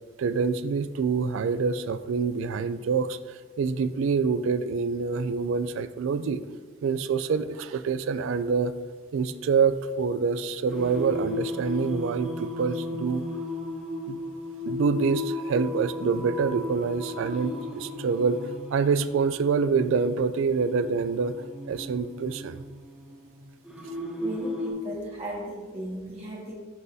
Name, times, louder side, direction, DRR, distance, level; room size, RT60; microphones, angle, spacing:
voice 1, 0.2-3.2 3.6-6.4 6.8-8.7 9.1-13.2 14.1-14.2 14.7-21.3 21.7-22.6, right 5 dB, 65° right, 13 dB, 0.3 m, -26 dB
Singing, 10.7-24.7, left 1 dB, 5° right, 1.8 m, -35 dB
voice 2, 24.2-26.5, right 1 dB, 30° right, -5 dB, 1.7 m, -36 dB
10.5 x 3.9 x 2.7 m, 1.5 s
head